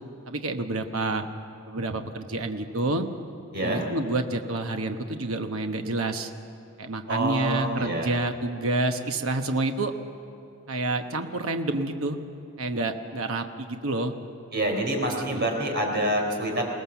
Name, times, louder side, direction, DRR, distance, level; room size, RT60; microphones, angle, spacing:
voice 1, 0.3-1.2 1.7-3.1 3.6-6.3 6.8-9.9 10.7-12.2 12.6-14.1 15.3-15.5, right 2 dB, 70° right, 6 dB, 1.1 m, -28 dB
voice 2, 3.5-3.8 7.1-8.2 14.5-16.6, right 1 dB, 50° right, 2 dB, 3.8 m, -26 dB
23.0 x 18.5 x 7.2 m, 2.7 s
head